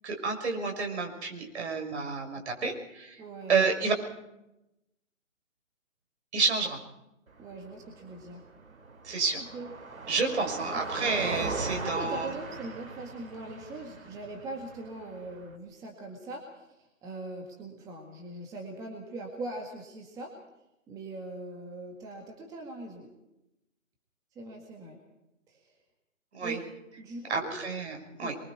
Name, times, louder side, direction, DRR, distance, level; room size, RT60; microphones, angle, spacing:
voice 1, 0.0-3.2 3.5-3.9 6.3-6.8 9.0-9.4 10.1-12.3 26.3-26.6 27.3-28.3, right 4 dB, 55° right, 3 dB, 6.1 m, -30 dB
voice 2, 3.2-3.6 7.4-8.4 9.3-9.7 10.3-10.8 11.8-20.3 20.9-23.1 24.3-25.0 25.5-25.8 26.4-27.5 28.2-28.4, right 2 dB, 10° right, 1 dB, 1.8 m, -41 dB
Car passing by, 7.3-15.6, right 3 dB, 80° right, 3.4 m, -39 dB
25.5 x 23.0 x 4.7 m, 0.89 s
hypercardioid pair, 155°, 41 cm